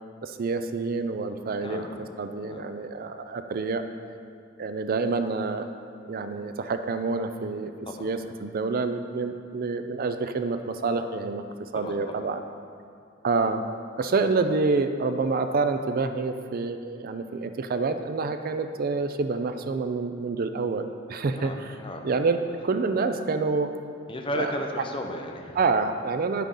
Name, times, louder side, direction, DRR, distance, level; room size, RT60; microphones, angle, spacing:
voice 1, 0.2-1.8 2.2-3.8 4.6-5.7 6.0-7.7 8.0-11.4 11.7-12.4 13.2-13.7 14.0-21.7 22.0-23.7 24.3-24.5 25.6-26.5, right 4 dB, 45° right, 8 dB, 0.4 m, -27 dB
voice 2, 1.6-2.0 2.4-2.7 7.9-8.1 11.7-12.2 21.3-22.1 22.5-22.6 24.1-25.6, equal, 25° left, 2 dB, 0.9 m, -34 dB
10.0 x 9.0 x 3.8 m, 2.5 s
head